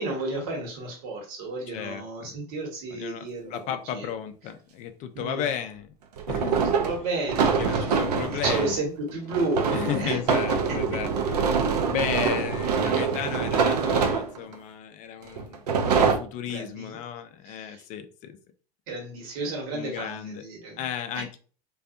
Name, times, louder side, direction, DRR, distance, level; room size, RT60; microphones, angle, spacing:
voice 1, 0.0-3.6 3.9-4.1 5.1-5.5 6.8-7.9 8.3-10.2 10.7-11.0 12.1-12.3 16.4-17.0 17.4-17.8 18.9-20.8, right 3 dB, 60° right, -1 dB, 1.1 m, -32 dB
voice 2, 1.7-2.4 2.9-5.9 6.3-6.7 7.6-8.8 9.7-15.7 16.0-18.4 19.7-20.4 20.8-21.4, left 9 dB, 40° left, 9 dB, 0.4 m, -34 dB
sound 1, 3.5-3.6 6.2-8.8 9.3-14.5 15.4-16.2, right 5 dB, 75° right, 0.5 m, -24 dB
2.5 x 2.3 x 2.4 m, 0.40 s
hypercardioid pair, 85°, 20 cm